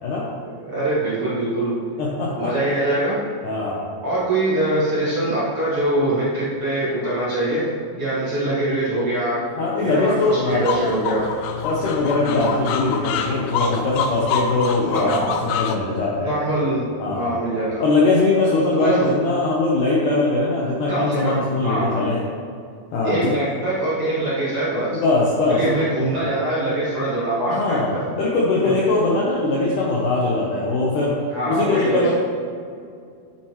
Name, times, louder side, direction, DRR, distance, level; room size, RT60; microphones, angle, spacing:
voice 1, 0.4-1.7 2.4-3.2 4.0-7.6 7.9-9.4 9.8-11.2 12.2-12.5 14.9-15.4 16.2-17.8 18.7-19.1 20.9-22.1 23.0-25.0 25.5-27.8 28.6-28.9 31.3-32.1, right 1 dB, 45° right, -10 dB, 2.2 m, -23 dB
voice 2, 2.0-2.5 3.4-3.9 9.6-10.6 11.6-15.1 15.4-16.4 17.0-17.4 17.8-22.2 22.9-23.3 24.9-25.8 26.2-26.3 27.5-31.1 31.5-32.1, left 3 dB, 70° left, -4 dB, 2.0 m, -21 dB
sound 1, 10.5-15.8, left 6 dB, 90° left, 2.0 m, -26 dB
9.3 x 8.8 x 3.1 m, 2.3 s
omnidirectional pair, 4.8 m